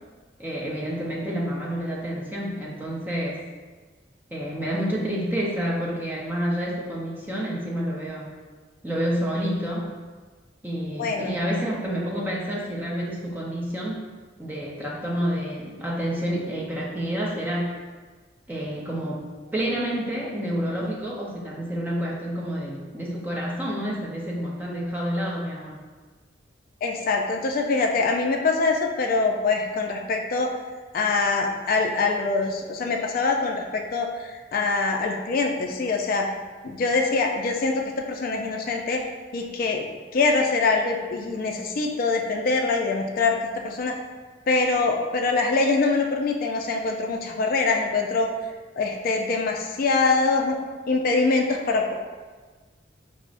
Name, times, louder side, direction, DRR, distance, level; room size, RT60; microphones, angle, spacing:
voice 1, 0.4-3.4 4.3-8.3 8.8-9.9 10.6-14.0 14.4-17.7 18.5-19.3 19.5-25.8, equal, 10° right, -4 dB, 0.6 m, -29 dB
voice 2, 11.0-11.3 26.8-30.5 30.9-36.3 36.6-39.0 39.3-39.9 40.1-43.9 44.5-48.3 48.8-50.6 50.9-51.9, left 3 dB, 50° left, 2 dB, 0.3 m, -24 dB
5.9 x 2.0 x 2.5 m, 1.4 s
head